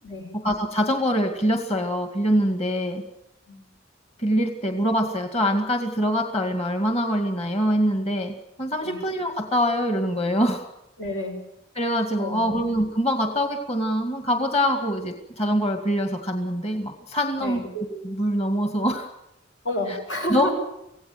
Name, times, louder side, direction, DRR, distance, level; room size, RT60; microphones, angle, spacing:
voice 1, 0.4-3.0 4.2-10.6 11.8-19.1 19.9-20.0 20.3-20.5, equal, 35° left, 5 dB, 2.1 m, -24 dB
voice 2, 11.0-11.4 12.2-12.5 17.4-17.7 19.6-20.5, left 1 dB, 85° left, 4 dB, 6.8 m, -30 dB
25.5 x 17.0 x 9.6 m, 0.87 s
head